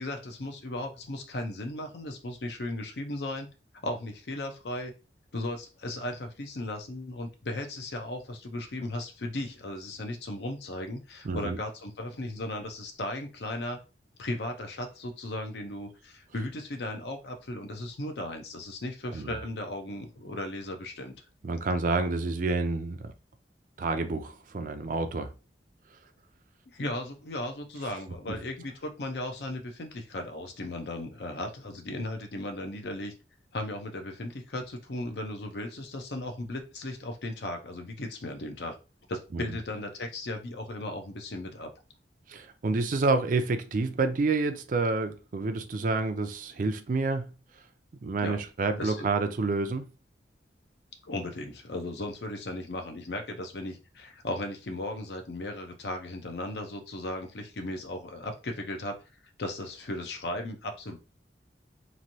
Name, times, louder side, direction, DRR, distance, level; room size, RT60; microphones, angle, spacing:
voice 1, 0.0-3.5 3.8-4.9 5.3-13.8 14.2-21.2 26.7-33.1 33.5-38.8 39.1-41.7 48.2-48.4 48.8-49.1 51.0-59.0 59.4-61.0, left 1 dB, 70° left, 0.7 m, -36 dB
voice 2, 11.2-11.6 19.1-19.4 21.4-23.1 23.8-25.3 39.3-39.5 42.3-47.3 48.0-49.8, right 3 dB, 50° right, 0.4 m, -28 dB
3.1 x 2.6 x 2.7 m
head